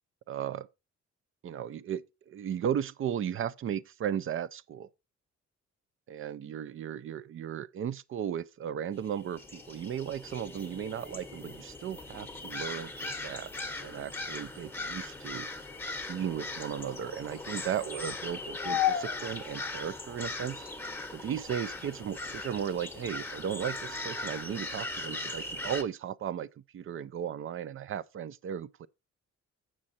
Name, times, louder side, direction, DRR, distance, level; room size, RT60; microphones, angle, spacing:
voice 1, 0.3-0.7 1.4-4.9 6.1-13.5 13.8-15.5 16.1-20.6 21.1-28.9, right 9 dB, 45° right, 0.4 m, -36 dB
sound 1, 9.0-25.8, left 4 dB, 10° left, 0.9 m, -37 dB
7.6 x 6.2 x 4.1 m
wide cardioid pair, 150°, 29 cm